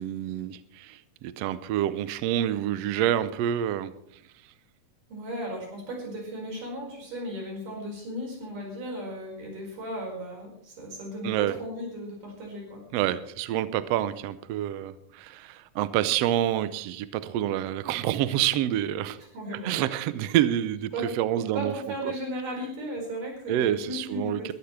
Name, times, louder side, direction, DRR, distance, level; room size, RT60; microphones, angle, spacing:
voice 1, 0.0-3.9 11.2-11.6 12.9-19.2 19.6-21.7 23.5-24.5, right 11 dB, 90° right, 14 dB, 1.4 m, -27 dB
voice 2, 5.1-12.8 19.2-19.8 20.9-21.1 21.5-24.5, right 1 dB, 70° right, -1 dB, 6.6 m, -36 dB
21.5 x 13.0 x 3.3 m, 0.68 s
omnidirectional pair, 3.8 m